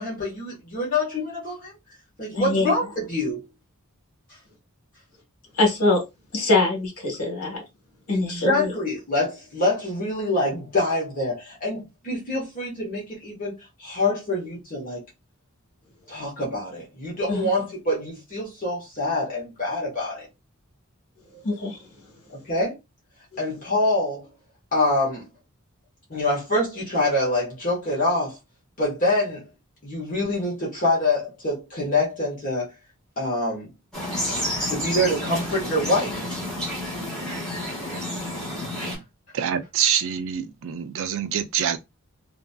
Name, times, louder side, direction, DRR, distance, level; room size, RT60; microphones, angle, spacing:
voice 1, 0.0-1.7 2.2-3.4 8.1-15.0 16.1-20.2 22.4-22.8 23.4-24.3 24.7-25.3 26.1-28.4 28.8-29.5 29.8-32.7 33.2-33.7 34.7-36.4, left 2 dB, 40° left, 1.3 m, -25 dB
voice 2, 2.4-2.7 5.6-6.0 6.3-7.6 8.1-8.7 17.3-17.5 21.3-21.8 34.3-34.5, left 2 dB, 70° left, 1.4 m, -23 dB
sound 1, 33.9-39.0, equal, 5° left, 1.5 m, -30 dB
voice 3, 39.3-41.8, right 9 dB, 65° right, 0.4 m, -25 dB
2.9 x 2.7 x 2.3 m
head